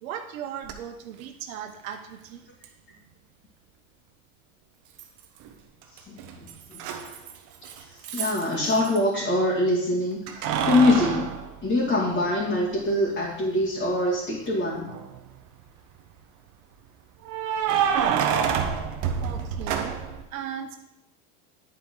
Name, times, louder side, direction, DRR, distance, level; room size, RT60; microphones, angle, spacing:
voice 1, 0.0-2.4 19.2-20.8, right 9 dB, 85° right, 6 dB, 0.9 m, -37 dB
Keys jangling, 0.6-0.7 2.6-2.7 5.0-5.5 5.8-9.0 10.3-12.4 12.9-13.0 14.8-15.3 17.3-20.2, right 7 dB, 50° right, 1.0 m, -28 dB
voice 2, 6.1-6.9 8.1-11.2 11.6-14.9, left 1 dB, 30° left, -7 dB, 2.3 m, -24 dB
10.0 x 4.5 x 3.8 m, 0.84 s
supercardioid pair, 115°, 40 cm